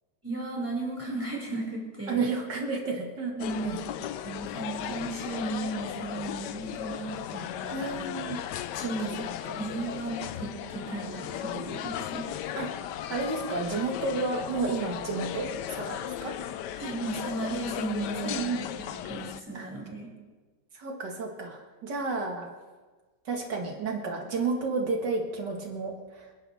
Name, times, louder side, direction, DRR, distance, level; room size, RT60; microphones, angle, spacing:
voice 1, 0.2-2.3 3.3-3.9 4.2-8.1 8.8-9.2 9.6-12.3 16.8-20.1, right 2 dB, 5° right, -5 dB, 5.6 m, -35 dB
voice 2, 2.1-3.8 7.7-8.4 8.8-8.9 9.4-9.6 12.6-12.7 13.1-16.3 18.2-18.7 19.5-19.7 20.7-22.5 23.3-26.3, right 4 dB, 75° right, 0 dB, 2.4 m, -31 dB
sound 1, 3.4-19.4, left 11 dB, 75° left, 1.2 m, -36 dB
28.0 x 11.0 x 3.5 m, 1.3 s
omnidirectional pair, 1.9 m